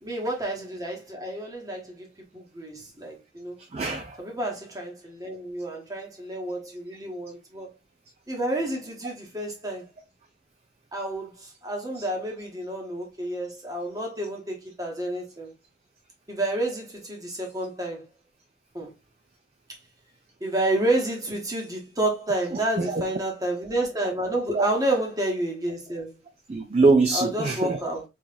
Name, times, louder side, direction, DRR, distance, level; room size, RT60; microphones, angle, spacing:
voice 1, 0.0-2.1 2.3-3.5 4.2-7.7 8.3-9.8 10.9-15.5 16.3-18.1 18.7-18.9 20.4-26.2 27.1-28.0, right 1 dB, 20° right, 1.2 m, -30 dB
voice 2, 3.7-4.2 22.5-23.0 24.5-24.7 26.5-27.8, right 3 dB, 35° right, 0.4 m, -23 dB
3.8 x 3.1 x 2.7 m
head